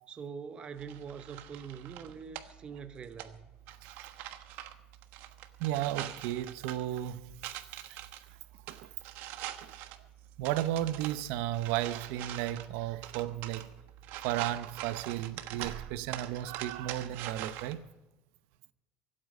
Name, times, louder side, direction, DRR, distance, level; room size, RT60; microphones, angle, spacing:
voice 1, 0.1-3.5, right 6 dB, 25° right, 0.7 m, -44 dB
sound 1, 0.8-17.7, right 12 dB, 70° right, 1.3 m, -44 dB
voice 2, 5.6-7.3 7.9-8.0 8.7-8.9 9.6-9.7 10.4-13.7 14.2-17.8, right 13 dB, 85° right, 0.8 m, -34 dB
24.5 x 8.7 x 5.4 m
cardioid pair, 155°, 4 cm